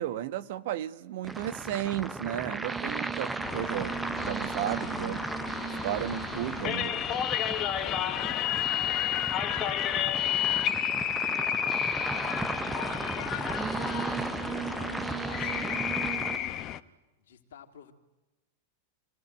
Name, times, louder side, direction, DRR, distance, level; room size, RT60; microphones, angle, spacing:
voice 1, 0.0-5.3 5.8-7.0, right 12 dB, 50° right, 1.3 m, -34 dB
sound 1, 1.2-16.4, right 2 dB, 10° right, 1.0 m, -36 dB
sound 2, 2.7-16.4, right 9 dB, 25° right, 1.0 m, -41 dB
sound 3, 3.4-16.8, left 11 dB, 35° left, 1.2 m, -32 dB
voice 2, 7.2-12.0 12.7-16.6 17.2-17.9, left 8 dB, 60° left, 3.4 m, -51 dB
28.5 x 18.0 x 9.6 m
figure-of-eight pair, 90°, 0 cm